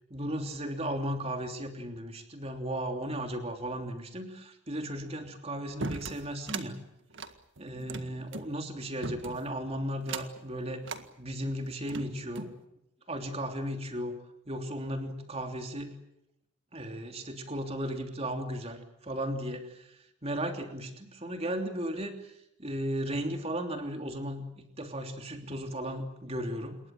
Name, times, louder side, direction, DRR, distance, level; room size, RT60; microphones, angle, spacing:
voice 1, 0.1-6.8 7.6-10.8 11.2-12.5 13.1-14.2 14.5-15.9 16.7-26.8, right 1 dB, 25° right, 5 dB, 3.2 m, -35 dB
sound 1, 5.8-6.7 7.1-8.5 9.0-9.5 10.0-10.4 10.8-11.1 11.6-12.6, right 3 dB, 55° right, 1.8 m, -38 dB
27.5 x 22.0 x 7.6 m, 0.82 s
head